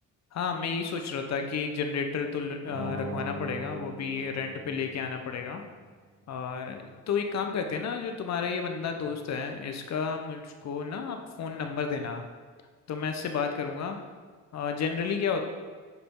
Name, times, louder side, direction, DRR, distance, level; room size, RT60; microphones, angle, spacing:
voice 1, 0.3-5.6 6.3-12.2 12.9-14.0 14.5-15.4, left 6 dB, 55° left, 5 dB, 1.2 m, -32 dB
sound 1, 2.6-5.4, right 2 dB, 55° right, 1.7 m, -39 dB
10.0 x 7.1 x 3.9 m, 1.5 s
cardioid pair, 125°, 32 cm